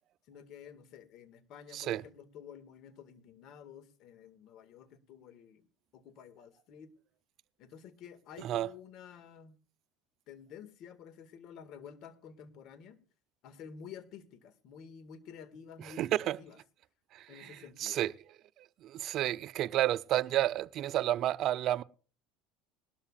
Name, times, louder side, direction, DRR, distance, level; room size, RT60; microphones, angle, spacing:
voice 1, 0.3-5.7 5.9-6.9 7.6-9.6 10.3-13.0 13.4-16.1 16.4-16.6 17.3-18.0, left 7 dB, 55° left, 1.9 m, -51 dB
voice 2, 8.4-8.7 15.8-16.4 17.1-18.1 18.6-21.8, right 13 dB, 50° right, 0.6 m, -31 dB
20.5 x 12.5 x 2.5 m
supercardioid pair, 105°, 0 cm